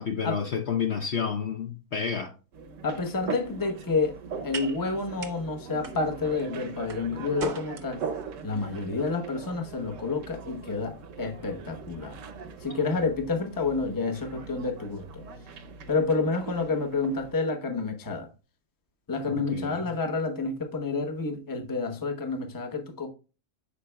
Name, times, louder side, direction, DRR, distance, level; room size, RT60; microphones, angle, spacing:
voice 1, 0.0-2.3 19.3-19.8, left 6 dB, 55° left, 0.8 m, -30 dB
sound 1, 2.5-17.3, right 5 dB, 60° right, 1.0 m, -41 dB
voice 2, 2.8-4.1 4.4-8.0 8.4-12.2 12.6-15.0 15.9-18.3 19.1-23.1, left 4 dB, 15° left, 0.7 m, -29 dB
sound 2, 3.0-11.4, right 4 dB, 40° right, 0.8 m, -44 dB
8.4 x 5.7 x 2.2 m
omnidirectional pair, 1.6 m